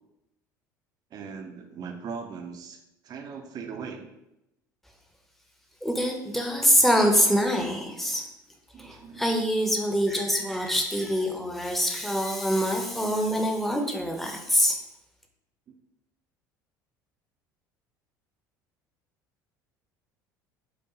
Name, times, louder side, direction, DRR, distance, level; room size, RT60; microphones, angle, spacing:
voice 1, 1.1-2.8 3.0-4.1 8.7-9.3, right 6 dB, 40° right, 5 dB, 0.5 m, -39 dB
voice 2, 5.8-8.2 8.8-14.8, equal, ahead, 2 dB, 0.6 m, -25 dB
4.8 x 2.1 x 3.0 m, 0.87 s
figure-of-eight pair, 65°, 10 cm